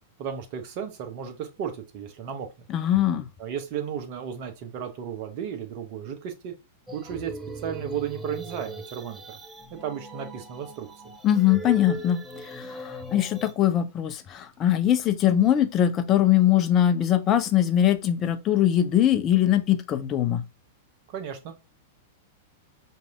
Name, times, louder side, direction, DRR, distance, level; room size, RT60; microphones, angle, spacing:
voice 1, 0.2-2.5 3.4-6.5 6.9-7.3 7.6-9.4 9.7-10.9 21.1-21.5, right 8 dB, 40° right, 0.9 m, -34 dB
voice 2, 2.7-3.3 11.2-20.4, left 11 dB, 30° left, 0.5 m, -22 dB
sound 1, 6.9-13.5, right 2 dB, 10° right, 0.6 m, -39 dB
4.6 x 2.7 x 3.5 m
figure-of-eight pair, 95°, 0 cm